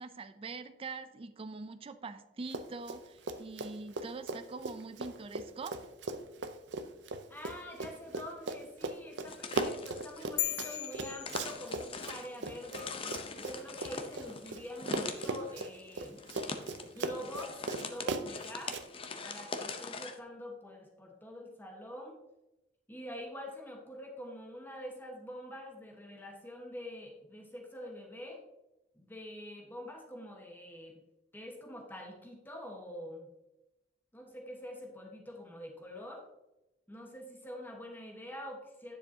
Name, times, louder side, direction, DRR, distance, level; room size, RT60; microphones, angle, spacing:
voice 1, 0.0-5.8, right 4 dB, 30° right, 10 dB, 0.4 m, -44 dB
Run, 2.5-3.0 3.3-14.6 14.9-18.8, right 3 dB, 75° right, 0.6 m, -38 dB
voice 2, 7.3-13.0 13.4-16.2 16.8-18.8 19.2-22.2 22.9-28.4 28.9-31.0 31.3-33.3 34.1-36.2 36.9-39.0, equal, 10° left, 0 dB, 1.3 m, -45 dB
sound 1, 9.3-20.2, left 4 dB, 30° left, 0.7 m, -42 dB
sound 2, 10.4-12.1, left 13 dB, 70° left, 0.5 m, -37 dB
10.0 x 7.0 x 2.8 m, 0.94 s
head